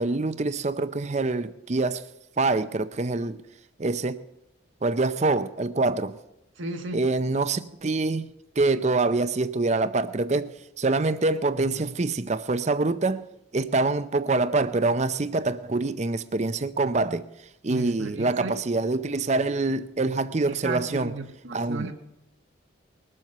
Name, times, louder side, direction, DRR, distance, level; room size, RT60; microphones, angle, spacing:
voice 1, 0.0-2.0 2.4-3.4 3.8-4.2 4.8-6.2 6.9-8.2 8.6-13.2 13.5-17.2 17.6-21.1 21.5-21.9, right 3 dB, 35° right, 0.5 m, -25 dB
voice 2, 6.5-7.1 17.7-18.6 20.4-21.9, right 3 dB, 75° right, 1.3 m, -35 dB
20.5 x 7.6 x 6.6 m
head